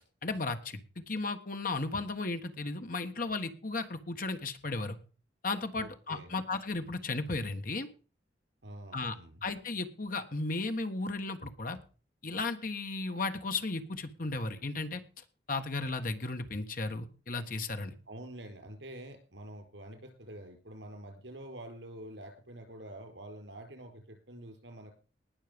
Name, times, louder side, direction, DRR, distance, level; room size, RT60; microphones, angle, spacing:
voice 1, 0.2-5.0 5.4-7.9 8.9-9.1 9.4-11.8 12.2-15.0 15.5-17.9, left 3 dB, 50° left, 7 dB, 1.5 m, -35 dB
voice 2, 5.7-6.4 8.6-9.4 18.1-24.9, right 1 dB, 85° right, 6 dB, 4.7 m, -47 dB
19.5 x 6.6 x 5.2 m, 0.37 s
head